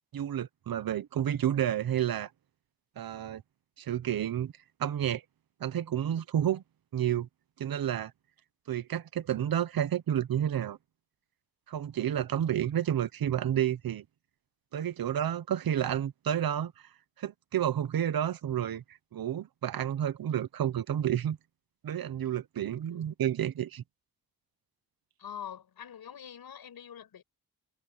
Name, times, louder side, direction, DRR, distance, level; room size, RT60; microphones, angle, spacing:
voice 1, 0.1-2.3 3.0-3.4 3.8-4.5 4.8-5.2 5.6-6.6 6.9-7.3 7.6-8.1 8.7-10.8 11.7-14.0 14.7-16.7 17.2-18.8 19.1-21.4 21.8-23.8, right 10 dB, 70° right, 1.0 m, -30 dB
voice 2, 25.2-27.2, left 9 dB, 80° left, 5.9 m, -44 dB
wide cardioid pair, 150°, 36 cm